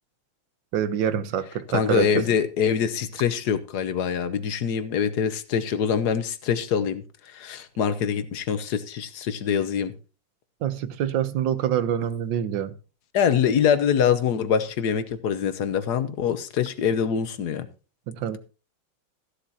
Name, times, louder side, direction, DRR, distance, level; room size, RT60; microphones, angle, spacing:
voice 1, 0.7-2.3 10.6-12.8 18.1-18.4, right 9 dB, 70° right, 1.5 m, -26 dB
voice 2, 1.7-9.9 13.1-17.7, left 7 dB, 60° left, 1.4 m, -24 dB
15.0 x 11.5 x 2.8 m
omnidirectional pair, 2.1 m